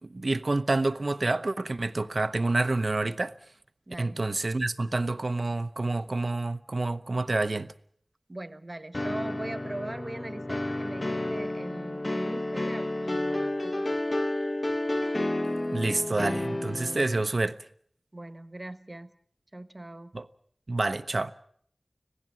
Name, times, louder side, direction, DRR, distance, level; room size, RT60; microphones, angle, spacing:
voice 1, 0.0-3.4 4.0-7.7 15.7-17.6 20.1-20.3 20.7-21.3, right 2 dB, 70° right, 0.8 m, -28 dB
voice 2, 3.9-4.2 8.3-14.3 18.1-19.1 19.5-20.1, right 1 dB, 45° right, 1.3 m, -41 dB
sound 1, 8.9-17.2, left 1 dB, 50° left, 1.0 m, -31 dB
26.0 x 17.0 x 7.4 m
wide cardioid pair, 45°, 0 cm